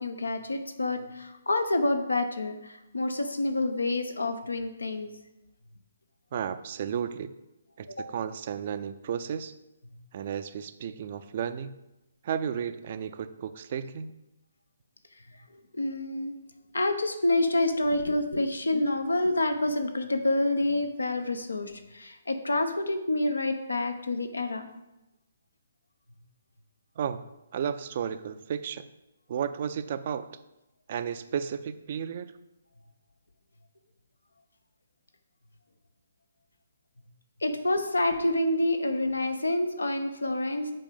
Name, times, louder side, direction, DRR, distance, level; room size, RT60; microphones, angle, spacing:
voice 1, 0.0-5.1 7.9-8.1 9.9-10.0 15.3-16.3 16.7-24.7 37.4-40.7, left 2 dB, 80° left, 7 dB, 0.9 m, -28 dB
voice 2, 6.3-7.3 7.8-9.5 10.1-11.7 12.2-14.1 27.0-27.2 27.5-28.8 29.3-30.3 30.9-32.3, right 8 dB, 45° right, 11 dB, 0.5 m, -33 dB
7.6 x 4.8 x 5.3 m, 0.94 s
figure-of-eight pair, 135°, 0 cm